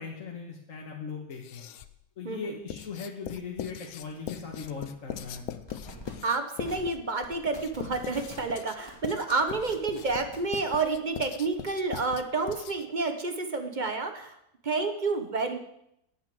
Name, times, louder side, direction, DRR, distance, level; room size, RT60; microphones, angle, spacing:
voice 1, 0.0-1.7 2.2-5.6, left 5 dB, 60° left, -1 dB, 1.8 m, -39 dB
Writing, 1.3-2.0 2.7-13.0, left 11 dB, 75° left, 1.1 m, -41 dB
sound 1, 4.1-4.2 4.5-4.7 5.1-5.4 5.7-6.1 6.6-6.9 7.2-8.5 8.9-9.1 9.5-10.6, left 1 dB, 15° left, 2.1 m, -46 dB
voice 2, 6.2-14.4 14.6-15.6, right 3 dB, 35° right, 7 dB, 1.1 m, -29 dB
9.0 x 8.0 x 7.7 m, 0.78 s
omnidirectional pair, 1.6 m